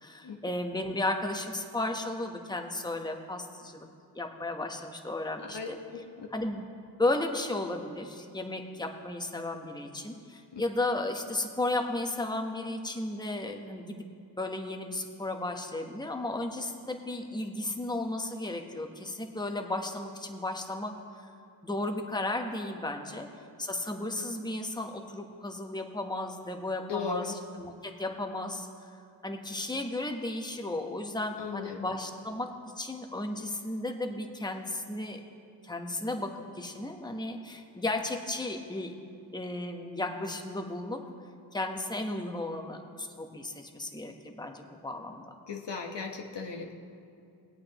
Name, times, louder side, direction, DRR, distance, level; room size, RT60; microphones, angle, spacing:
voice 1, 0.0-3.9 4.1-5.8 6.3-6.7 7.0-14.0 14.4-20.9 21.2-21.3 21.6-23.3 23.6-28.9 29.2-32.5 32.8-35.2 35.6-36.3 36.5-38.9 39.3-41.0 41.5-45.2, left 2 dB, 10° left, 3 dB, 1.0 m, -34 dB
voice 2, 5.4-6.3 10.5-10.6 26.9-27.3 31.4-31.9 45.5-46.7, left 5 dB, 70° left, 2 dB, 1.2 m, -37 dB
20.5 x 8.5 x 3.0 m, 2.5 s
cardioid pair, 55°, 44 cm